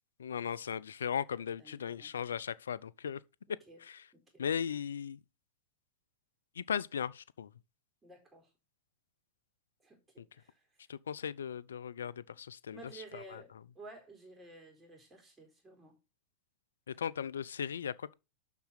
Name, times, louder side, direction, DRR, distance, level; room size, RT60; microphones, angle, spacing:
voice 1, 0.2-3.2 3.8-4.0 4.4-5.2 6.6-7.5 10.9-13.4 16.9-18.1, left 8 dB, 85° left, 0.5 m, -37 dB
voice 2, 1.6-2.1 3.7-3.8 4.1-4.4 8.0-8.5 9.8-10.9 12.7-16.0, right 2 dB, 15° right, 4.2 m, -53 dB
7.4 x 6.0 x 5.7 m
hypercardioid pair, 110°, 0 cm